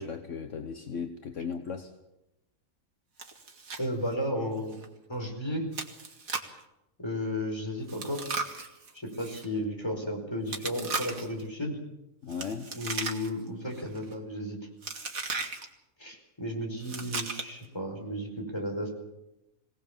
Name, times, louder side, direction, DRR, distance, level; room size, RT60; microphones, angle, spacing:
voice 1, 0.0-1.9 12.2-12.7, left 5 dB, 60° left, 7 dB, 1.5 m, -36 dB
Chewing mastication, 3.2-3.9 4.1-4.2 4.7-4.9 5.7-6.6 7.9-9.5 10.5-11.4 12.3-13.5 13.8-14.1 14.8-15.7 16.8-17.7, right 4 dB, 75° right, 2.5 m, -36 dB
voice 2, 3.8-4.8 5.1-5.7 7.0-8.2 8.9-11.8 12.7-14.6 16.0-18.9, equal, 20° left, 3 dB, 4.7 m, -33 dB
24.0 x 18.0 x 7.3 m, 0.92 s
omnidirectional pair, 1.4 m